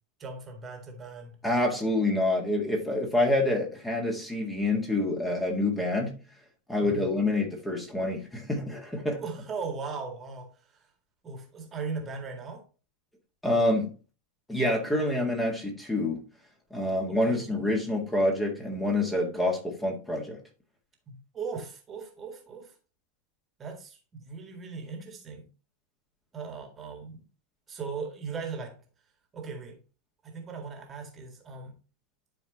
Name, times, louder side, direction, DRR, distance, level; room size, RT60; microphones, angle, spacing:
voice 1, 0.2-1.4 6.8-7.1 9.1-10.8 11.2-12.7 17.1-17.5 21.1-22.7 23.6-25.5 26.3-27.2 27.7-28.8 29.3-29.8 30.2-31.7, right 4 dB, 20° right, 1.9 m, -38 dB
voice 2, 1.4-6.2 6.7-9.2 13.4-13.9 14.5-16.2 16.7-20.4, left 1 dB, 10° left, 1.9 m, -27 dB
11.0 x 4.6 x 3.0 m
figure-of-eight pair, 90°, 0 cm